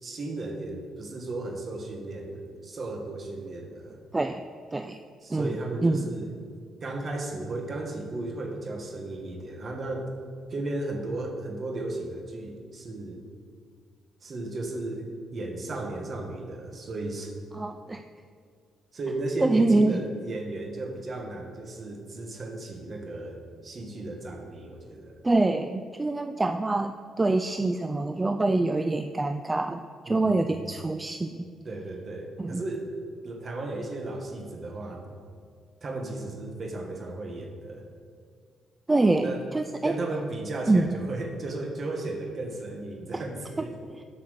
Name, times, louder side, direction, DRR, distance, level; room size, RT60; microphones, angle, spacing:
voice 1, 0.0-4.0 5.2-6.3 6.8-10.1 10.5-13.2 14.2-17.3 18.9-25.2 30.1-30.7 31.6-32.9 33.2-35.1 35.8-37.8 39.2-39.4 39.8-43.8, right 2 dB, 40° right, 3 dB, 1.6 m, -35 dB
voice 2, 5.8-6.1 17.5-18.0 19.4-20.0 25.2-31.4 32.4-32.6 38.9-40.0 40.7-41.0 43.1-43.2 43.6-43.7, right 2 dB, 20° right, 9 dB, 0.3 m, -25 dB
8.4 x 5.8 x 6.5 m, 2.2 s
cardioid pair, 90°, 0 cm